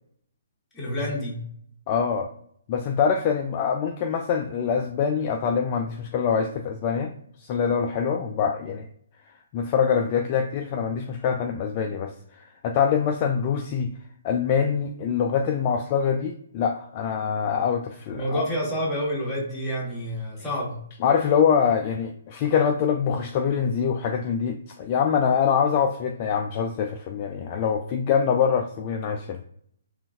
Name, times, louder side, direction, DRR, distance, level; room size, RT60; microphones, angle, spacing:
voice 1, 0.7-1.5 18.1-20.8, equal, 10° left, -5 dB, 1.4 m, -28 dB
voice 2, 1.9-2.3 2.7-7.1 7.4-8.9 9.5-13.9 14.2-18.4 21.0-29.4, left 7 dB, 35° left, 3 dB, 0.3 m, -24 dB
3.7 x 2.5 x 2.3 m, 0.67 s
hypercardioid pair, 135°, 0 cm